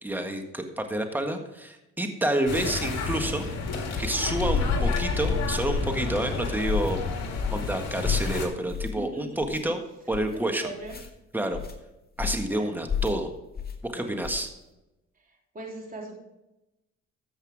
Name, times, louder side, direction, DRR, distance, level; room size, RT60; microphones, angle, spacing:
voice 1, 0.0-3.5 4.0-7.0 7.5-9.8 10.1-10.7 11.3-11.6 12.2-13.3 13.8-14.5, right 1 dB, 5° right, 5 dB, 1.7 m, -29 dB
sound 1, 2.5-8.5, left 4 dB, 60° left, 2.9 m, -29 dB
sound 2, 6.6-6.9 7.4-7.7 8.0-8.3 8.7-9.1 9.4-9.6 10.1-10.4 10.8-11.1 11.5-11.8 12.2-12.5 12.9-13.2 13.5-13.8 14.2-14.5, left 7 dB, 30° left, 2.2 m, -31 dB
voice 2, 9.0-9.5 10.3-11.0 12.4-12.7 13.9-14.2 15.2-15.3 15.5-16.2, right 2 dB, 30° right, -1 dB, 3.5 m, -39 dB
13.5 x 8.1 x 3.6 m, 0.94 s
cardioid pair, 90°, 30 cm